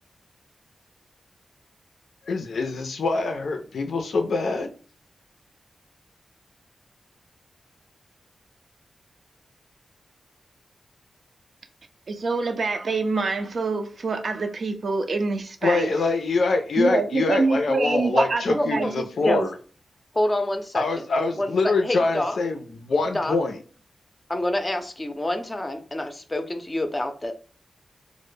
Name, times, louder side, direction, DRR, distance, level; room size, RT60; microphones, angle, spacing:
voice 1, 2.3-4.7 15.6-19.5 20.7-23.6, left 3 dB, 80° left, 0.4 m, -24 dB
voice 2, 12.1-15.9 16.8-19.5, right 3 dB, 60° right, 0.4 m, -26 dB
voice 3, 18.5-18.9 19.2-19.4 20.1-21.0 21.4-21.5 21.8-22.4 23.1-23.4 24.3-27.3, left 1 dB, 20° left, 0.5 m, -27 dB
2.1 x 2.0 x 3.1 m
wide cardioid pair, 85°, 0 cm